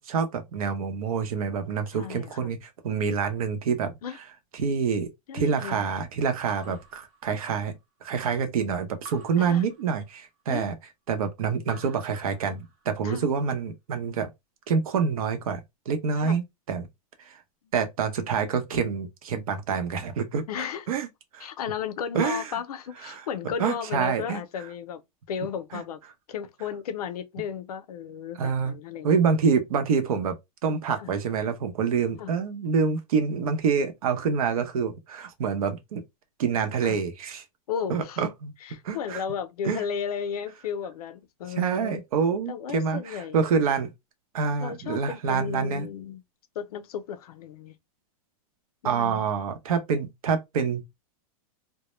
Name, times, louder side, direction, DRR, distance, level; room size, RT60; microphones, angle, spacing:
voice 1, 0.1-3.9 4.5-5.1 5.3-7.7 8.0-10.7 11.1-14.3 14.7-15.6 15.9-16.9 17.2-17.4 17.7-21.1 21.3-21.5 22.1-22.6 23.0-23.2 23.6-24.4 25.7-25.8 28.4-28.7 29.0-36.0 36.4-37.4 37.9-38.5 38.8-39.2 39.6-39.8 41.6-43.9 44.3-45.9 48.8-50.8, right 6 dB, 70° right, 0.7 m, -27 dB
voice 2, 1.9-2.5 3.2-3.3 4.0-4.2 5.3-5.9 6.7-6.8 9.4-9.6 10.5-10.7 13.0-13.3 16.2-16.4 20.5-20.8 21.4-25.0 25.3-26.0 26.3-29.2 31.0-31.1 32.2-32.3 36.8-37.0 37.7-38.2 38.6-42.0 42.5-43.4 44.6-46.2 46.6-47.8 48.8-49.2, left 7 dB, 85° left, 0.5 m, -34 dB
Raindrop / Drip, 6.5-7.8 9.0-10.4 11.6-13.0, right 4 dB, 25° right, 0.4 m, -49 dB
2.2 x 2.0 x 2.9 m
supercardioid pair, 170°, 19 cm